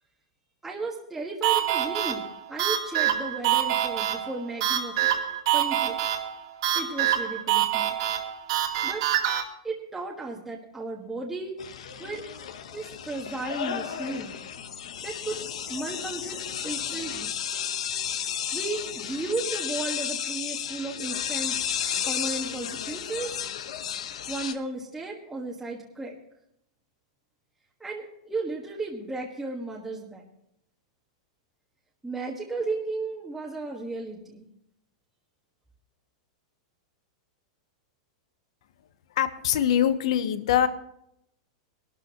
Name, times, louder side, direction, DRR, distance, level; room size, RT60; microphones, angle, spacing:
voice 1, 0.6-2.2 2.5-5.1 5.5-6.0 6.7-8.0 8.8-9.0 9.6-11.6 12.0-12.3 12.7-14.4 15.0-17.3 18.5-21.6 22.1-23.4 24.3-26.2 27.8-30.3 32.0-34.5, right 3 dB, 5° right, -3 dB, 1.5 m, -34 dB
sound 1, 1.4-9.4, right 11 dB, 65° right, 2.2 m, -26 dB
sound 2, 11.6-24.5, left 9 dB, 85° left, 1.2 m, -33 dB
voice 2, 39.2-40.7, left 10 dB, 70° left, 11 dB, 1.1 m, -23 dB
21.0 x 12.5 x 3.0 m, 0.75 s
supercardioid pair, 160°, 3 cm